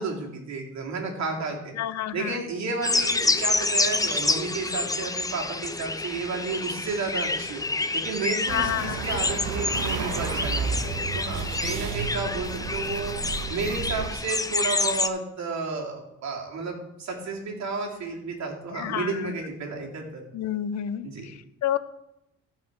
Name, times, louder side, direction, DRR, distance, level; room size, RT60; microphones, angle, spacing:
voice 1, 0.0-1.7 2.1-7.6 7.9-13.1 13.5-20.2 21.0-21.3, right 3 dB, 65° right, 0 dB, 2.5 m, -32 dB
voice 2, 1.8-2.4 8.5-9.0 18.7-19.3 20.3-21.8, left 11 dB, 65° left, 14 dB, 0.7 m, -29 dB
sound 1, 2.8-15.1, left 3 dB, 10° left, 0.5 m, -28 dB
sound 2, 8.5-14.1, right 5 dB, 90° right, 1.0 m, -32 dB
14.5 x 4.9 x 4.6 m, 0.87 s
cardioid pair, 90°, 30 cm